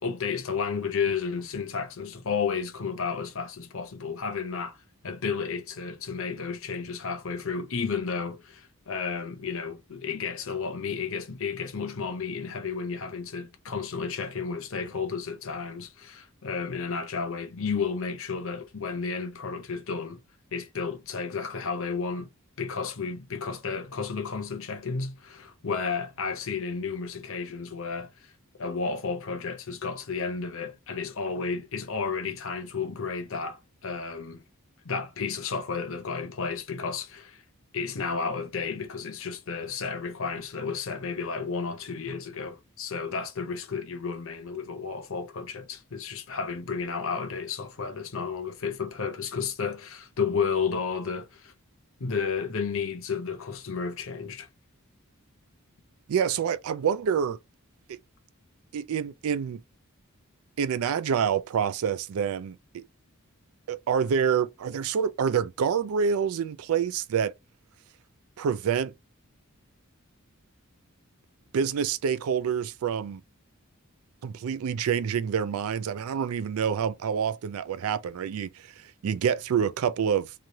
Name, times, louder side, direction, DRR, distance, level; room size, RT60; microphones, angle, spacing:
voice 1, 0.0-4.8 5.0-20.2 20.5-22.3 22.6-28.1 28.6-34.4 34.8-37.4 37.7-51.5 52.0-54.5, left 5 dB, 65° left, 0.7 m, -32 dB
voice 2, 56.1-57.4 57.9-58.0 58.7-59.6 60.6-62.8 63.7-67.3 68.4-68.9 71.5-73.2 74.2-80.3, right 7 dB, 75° right, 0.3 m, -27 dB
3.1 x 2.3 x 2.7 m
head